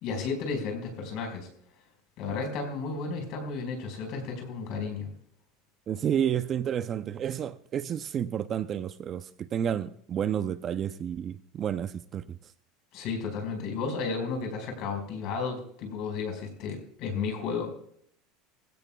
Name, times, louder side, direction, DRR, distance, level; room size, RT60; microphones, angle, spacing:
voice 1, 0.0-1.5 2.2-5.1 12.9-17.7, left 4 dB, 50° left, 4.7 m, -33 dB
voice 2, 5.9-9.2 9.5-12.2, right 9 dB, 30° right, 0.4 m, -30 dB
21.0 x 16.5 x 2.3 m
cardioid pair, 165°, 0 cm